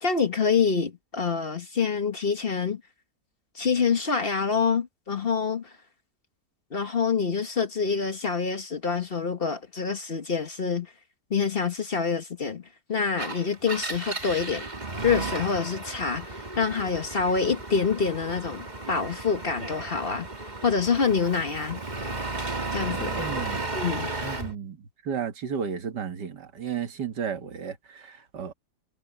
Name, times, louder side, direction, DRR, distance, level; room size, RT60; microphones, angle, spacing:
voice 1, 0.0-2.8 3.5-5.7 6.7-10.9 11.3-14.6 15.0-20.3 20.6-21.8 22.7-23.2 23.7-24.1, left 5 dB, 35° left, 1.4 m, -26 dB
Engine, 13.1-24.5, right 2 dB, 25° right, 2.4 m, -34 dB
voice 2, 23.2-23.6 24.2-28.5, right 7 dB, 90° right, 2.3 m, -33 dB
omnidirectional pair, 1.8 m